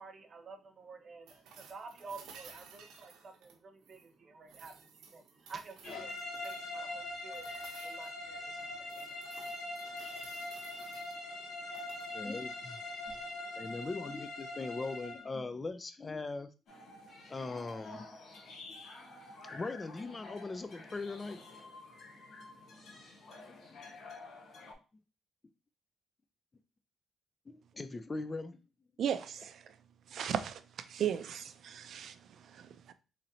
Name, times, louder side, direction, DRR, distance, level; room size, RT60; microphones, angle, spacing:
voice 1, 0.0-12.3 13.0-13.9, right 4 dB, 45° right, 6 dB, 0.8 m, -52 dB
sound 1, 1.3-4.1 4.5-6.7 7.3-8.1 8.6-11.1 11.6-12.1 14.1-14.2, right 6 dB, 90° right, 0.7 m, -56 dB
sound 2, 5.8-15.3, left 2 dB, 85° left, 1.2 m, -42 dB
voice 2, 12.1-12.8 13.6-16.5 17.3-18.1 18.7-18.8 19.5-21.6 23.5-23.7 27.5-28.6, left 3 dB, 25° left, 10 dB, 0.4 m, -40 dB
sound 3, 16.7-24.7, left 3 dB, 65° left, 1.1 m, -51 dB
voice 3, 29.0-29.6 30.1-32.9, right 9 dB, 65° right, 11 dB, 0.4 m, -37 dB
4.0 x 3.1 x 2.7 m, 0.32 s
cardioid pair, 90°, 0 cm